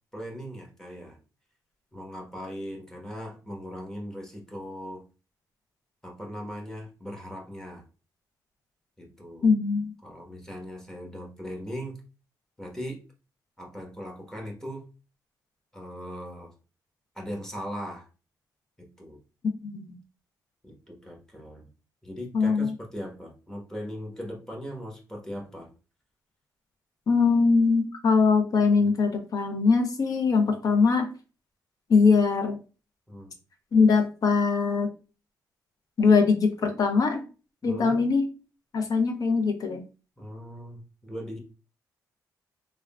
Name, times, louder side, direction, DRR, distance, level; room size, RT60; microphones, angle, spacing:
voice 1, 0.1-1.2 1.9-5.0 6.0-7.8 9.0-9.4 10.0-12.0 12.6-13.0 13.6-14.8 15.7-16.5 17.1-18.1 18.8-19.2 20.6-21.7 22.0-25.7 33.1-33.4 37.6-38.0 40.2-41.4, equal, 5° left, -1 dB, 1.2 m, -39 dB
voice 2, 9.4-9.9 19.6-20.0 22.3-22.7 27.1-31.1 31.9-32.6 33.7-34.9 36.0-37.2 37.6-38.3 38.7-39.8, left 4 dB, 55° left, 5 dB, 0.7 m, -22 dB
3.4 x 2.3 x 2.3 m, 0.33 s
cardioid pair, 75°, 7 cm